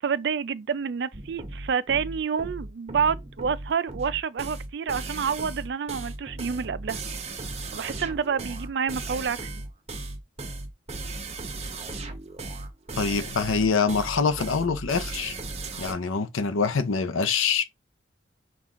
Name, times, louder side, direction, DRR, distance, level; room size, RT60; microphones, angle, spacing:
voice 1, 0.0-7.0 7.7-9.5, right 6 dB, 55° right, 0.3 m, -28 dB
sound 1, 1.1-15.9, right 2 dB, 30° right, 0.7 m, -36 dB
voice 2, 13.0-15.3 15.8-17.6, left 5 dB, 90° left, 0.6 m, -25 dB
5.9 x 2.4 x 3.6 m
head